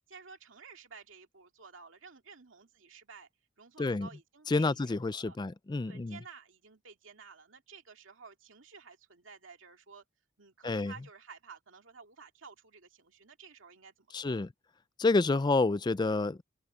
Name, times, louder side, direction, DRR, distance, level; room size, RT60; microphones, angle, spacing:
voice 1, 0.1-3.3 3.6-5.4 5.8-10.0 10.4-14.5 15.4-15.5, right 5 dB, 80° right, 2.2 m, -53 dB
voice 2, 3.8-4.1 4.5-6.2 10.6-10.9 14.1-14.5 15.0-16.4, left 3 dB, 20° left, 0.4 m, -29 dB
open air
head